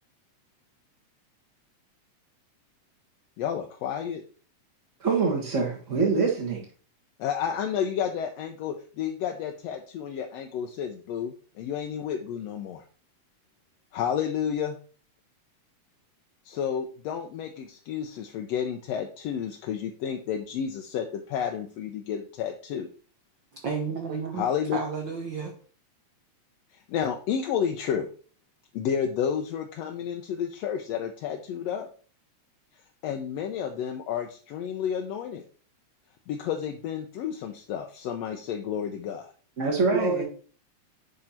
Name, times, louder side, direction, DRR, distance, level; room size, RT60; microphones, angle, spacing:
voice 1, 3.4-4.2 7.2-12.8 13.9-14.8 16.4-22.9 24.3-24.8 26.7-28.1 28.7-31.9 33.0-35.4 36.3-39.3, left 8 dB, 75° left, 1.6 m, -31 dB
voice 2, 5.0-6.6 39.6-40.2, right 4 dB, 40° right, 1.1 m, -25 dB
voice 3, 23.5-24.4 24.7-25.5 39.9-40.2, right 4 dB, 65° right, 1.1 m, -30 dB
10.5 x 3.7 x 4.4 m
omnidirectional pair, 3.4 m